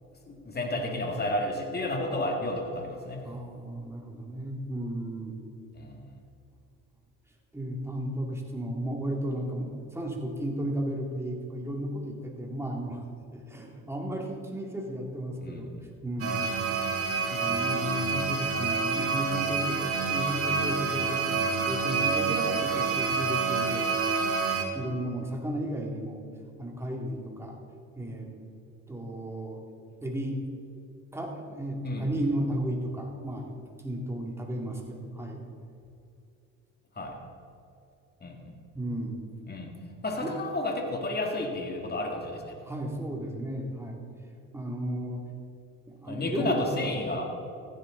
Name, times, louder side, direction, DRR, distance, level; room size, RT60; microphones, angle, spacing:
voice 1, 0.3-3.3 5.8-6.1 15.4-15.6 31.8-32.3 37.0-37.2 38.2-38.4 39.5-39.7 40.0-42.6 46.1-47.3, left 1 dB, 25° left, 2 dB, 2.2 m, -31 dB
voice 2, 3.2-5.4 7.5-13.0 13.3-15.7 16.0-16.5 17.3-23.9 24.7-26.2 26.6-27.6 28.0-28.3 28.9-29.6 30.0-30.4 31.1-33.5 33.8-35.4 38.7-39.2 40.2-40.3 42.7-44.0 44.5-45.3 45.9-46.9, right 1 dB, 5° right, 0 dB, 2.3 m, -34 dB
sound 1, 16.2-24.6, right 5 dB, 40° right, 1.7 m, -28 dB
15.0 x 10.5 x 3.9 m, 2.6 s
supercardioid pair, 80°, 35 cm